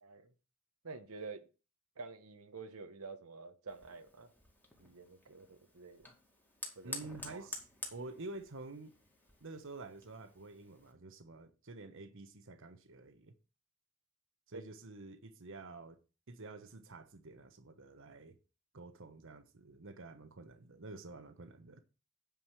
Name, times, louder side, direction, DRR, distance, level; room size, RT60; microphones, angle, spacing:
voice 1, 0.8-1.5 2.0-4.3 4.8-6.1 6.8-7.0 7.3-7.5 14.5-14.6, right 4 dB, 85° right, 1.1 m, -48 dB
Fire, 3.7-10.9, left 2 dB, 10° left, 2.2 m, -50 dB
voice 2, 6.8-7.6 7.9-8.9 9.4-13.3 14.5-16.0 16.3-18.4 18.7-21.8, right 2 dB, 65° right, 1.1 m, -49 dB
9.2 x 5.0 x 6.2 m
head